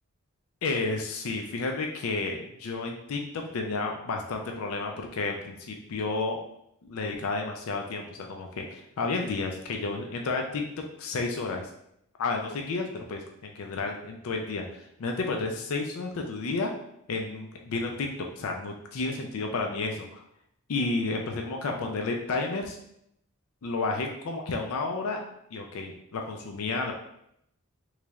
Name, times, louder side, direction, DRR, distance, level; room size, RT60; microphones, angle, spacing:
voice 1, 0.6-6.4 6.8-10.6 11.0-11.7 12.2-16.7 17.1-18.1 18.4-20.2 20.7-22.8 23.6-25.2 25.5-26.9, left 3 dB, 75° left, 2 dB, 0.4 m, -31 dB
3.8 x 3.1 x 2.3 m, 0.76 s
head